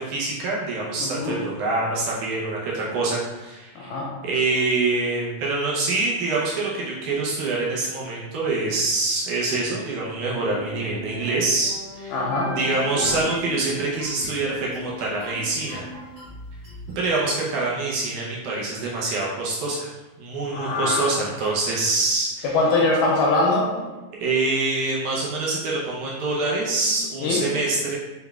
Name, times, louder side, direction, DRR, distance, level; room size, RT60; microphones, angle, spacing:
voice 1, 0.0-4.0 4.2-12.2 12.6-15.8 17.0-19.9 20.2-22.6 24.2-28.0, right 3 dB, 75° right, -5 dB, 2.0 m, -25 dB
voice 2, 1.0-1.4 3.8-4.1 12.1-12.5 20.5-21.1 22.4-23.7 27.2-27.5, left 2 dB, 80° left, -2 dB, 2.0 m, -22 dB
sound 1, 10.4-17.2, equal, 45° right, 1.4 m, -37 dB
5.3 x 4.0 x 2.3 m, 1.1 s
omnidirectional pair, 4.0 m